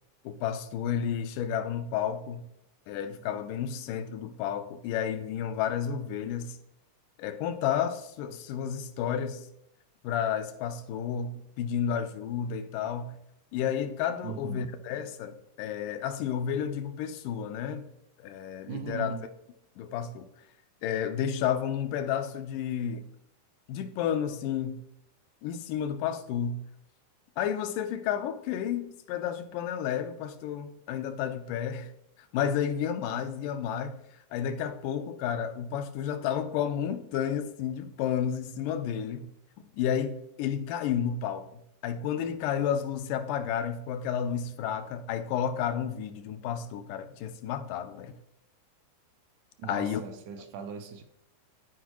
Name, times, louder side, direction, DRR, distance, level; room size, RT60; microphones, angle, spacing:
voice 1, 0.3-2.5 2.9-6.6 7.2-9.5 10.0-13.2 13.5-17.9 18.2-19.1 19.8-20.3 20.8-23.1 23.7-24.8 25.4-26.6 27.4-31.9 32.3-34.0 34.3-39.3 39.7-48.2 49.6-50.0, left 8 dB, 85° left, 2.3 m, -31 dB
voice 2, 14.2-14.8 18.7-19.3 49.6-51.0, right 6 dB, 80° right, 2.1 m, -38 dB
12.5 x 5.0 x 3.0 m
omnidirectional pair, 3.7 m